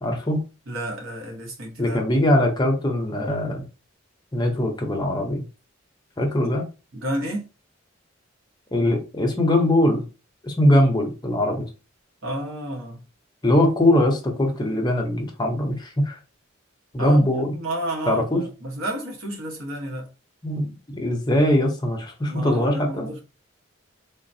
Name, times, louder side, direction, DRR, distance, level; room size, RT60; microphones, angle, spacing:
voice 1, 0.0-0.5 1.8-3.7 4.3-5.4 6.2-6.7 8.7-10.1 10.4-11.7 13.4-16.2 16.9-17.5 18.1-18.4 20.4-20.7 21.0-23.1, left 1 dB, 20° left, 0.6 m, -21 dB
voice 2, 0.7-2.0 6.4-6.5 6.9-7.5 12.2-13.0 17.0-20.1 22.3-23.2, right 1 dB, 75° right, 1.1 m, -31 dB
3.9 x 2.2 x 2.6 m
head